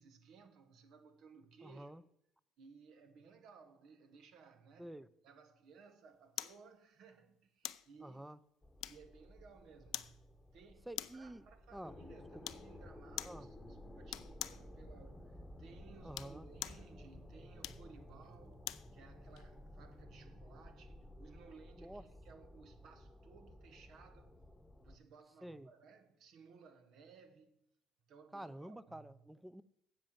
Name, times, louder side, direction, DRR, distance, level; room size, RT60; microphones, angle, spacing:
voice 1, 0.0-1.9 2.6-5.0 5.2-8.2 8.9-24.4 24.8-27.7 28.1-29.1, right 5 dB, 65° right, 1.3 m, -60 dB
voice 2, 1.6-2.0 4.8-5.1 8.0-8.4 10.9-11.9 13.2-13.5 16.0-16.5 21.8-22.1 25.4-25.7 28.3-29.6, right 1 dB, 5° right, 0.6 m, -49 dB
sound 1, 6.4-6.6 7.6-7.9 8.8-9.2 9.9-10.2 10.9-11.3 12.4-12.7 13.2-13.4 14.1-14.6 16.0-16.9 17.6-18.9 19.4-19.5, left 14 dB, 70° left, 0.4 m, -44 dB
sound 2, 8.6-25.0, left 1 dB, 10° left, 1.2 m, -55 dB
7.6 x 7.4 x 7.3 m
supercardioid pair, 75°, 0 cm